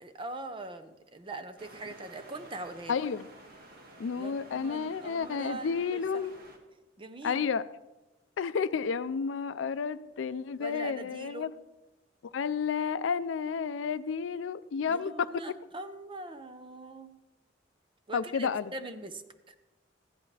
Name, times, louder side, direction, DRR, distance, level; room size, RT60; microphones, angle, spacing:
voice 1, 0.0-3.0 4.2-6.3 7.0-7.4 10.6-11.5 14.9-17.1 18.1-19.6, right 2 dB, 25° right, 9 dB, 0.7 m, -42 dB
sound 1, 1.6-6.6, right 1 dB, 55° right, 1.5 m, -52 dB
voice 2, 2.9-3.3 4.0-6.3 7.2-7.6 8.4-11.5 12.3-15.3 18.1-18.7, left 6 dB, 85° left, 15 dB, 0.4 m, -31 dB
15.0 x 11.0 x 3.3 m, 1.1 s
head